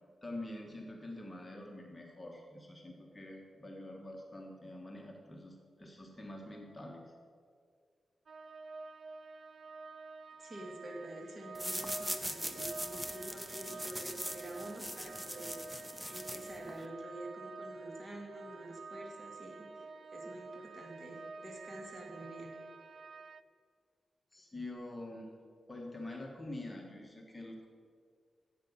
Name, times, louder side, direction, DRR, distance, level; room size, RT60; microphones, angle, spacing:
voice 1, 0.2-7.0 24.3-25.3 25.7-27.7, left 1 dB, 15° left, 0 dB, 1.5 m, -46 dB
sound 1, 8.3-23.4, right 3 dB, 55° right, 0.4 m, -49 dB
voice 2, 10.4-15.6 16.1-22.5, right 1 dB, 35° right, 0 dB, 2.4 m, -47 dB
sound 2, 11.5-16.9, equal, 10° right, 0.8 m, -41 dB
10.5 x 8.4 x 7.3 m, 2.1 s
wide cardioid pair, 100°, 0 cm